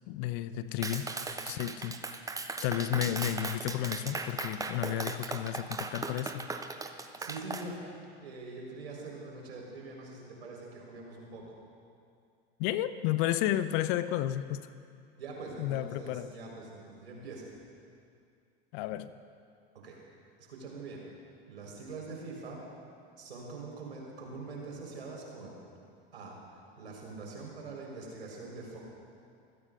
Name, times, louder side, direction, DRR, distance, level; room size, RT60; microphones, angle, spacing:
voice 1, 0.1-1.1 1.4-2.0 2.6-6.5 12.6-14.7 15.6-16.3 18.7-19.1, left 12 dB, 50° left, 13 dB, 0.8 m, -32 dB
Clapping, 0.8-7.7, right 3 dB, 10° right, 0.8 m, -38 dB
voice 2, 7.2-7.9 8.2-11.5 15.2-17.5 19.7-19.9 20.4-21.0 21.5-22.6 23.2-25.6 26.1-28.8, right 3 dB, 80° right, -2 dB, 4.4 m, -44 dB
25.5 x 17.0 x 2.6 m, 2.4 s
hypercardioid pair, 85°, 32 cm